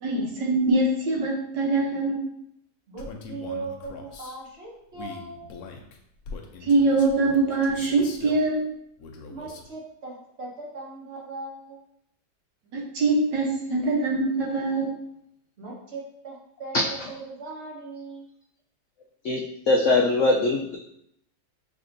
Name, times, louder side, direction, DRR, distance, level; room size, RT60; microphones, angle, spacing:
voice 1, 0.0-2.2 6.6-8.7 12.7-14.9, right 2 dB, 75° right, -2 dB, 1.5 m, -23 dB
voice 2, 2.9-5.5 9.3-11.8 15.6-18.3, right 3 dB, 40° right, -4 dB, 1.1 m, -39 dB
Male speech man speaking, 3.0-4.4 4.9-8.4 9.0-9.7, left 4 dB, 70° left, 1.0 m, -41 dB
voice 3, 19.2-20.8, left 2 dB, 90° left, 0 dB, 0.6 m, -22 dB
5.6 x 3.4 x 2.6 m, 0.75 s
omnidirectional pair, 1.9 m